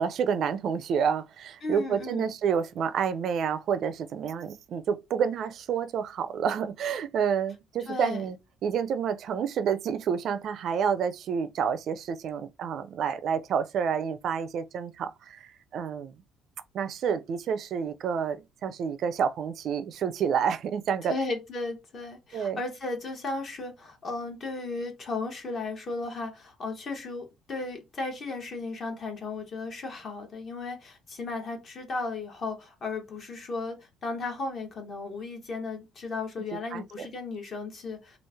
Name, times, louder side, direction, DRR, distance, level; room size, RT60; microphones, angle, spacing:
voice 1, 0.0-8.4 8.6-16.2 16.7-21.1 22.3-22.6 36.7-37.1, right 7 dB, 55° right, 0.4 m, -29 dB
voice 2, 1.6-2.2 7.9-8.2 21.0-38.2, left 3 dB, 40° left, 1.0 m, -35 dB
3.1 x 2.4 x 3.4 m
cardioid pair, 135°, 0 cm